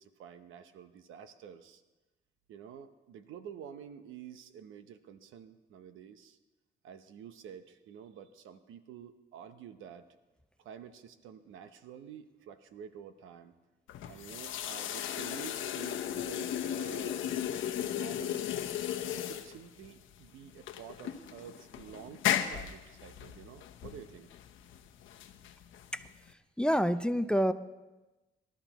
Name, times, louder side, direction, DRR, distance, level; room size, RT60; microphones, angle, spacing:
voice 1, 0.0-1.8 2.5-6.4 6.8-10.1 10.6-13.5 14.1-17.3 17.8-18.5 19.1-24.3, right 8 dB, 85° right, 10 dB, 0.9 m, -49 dB
sound 1, 13.9-26.3, left 10 dB, 80° left, 0.9 m, -36 dB
voice 2, 26.6-27.5, equal, 5° left, 12 dB, 0.5 m, -27 dB
23.5 x 12.5 x 3.0 m, 1.1 s
cardioid pair, 90°, 20 cm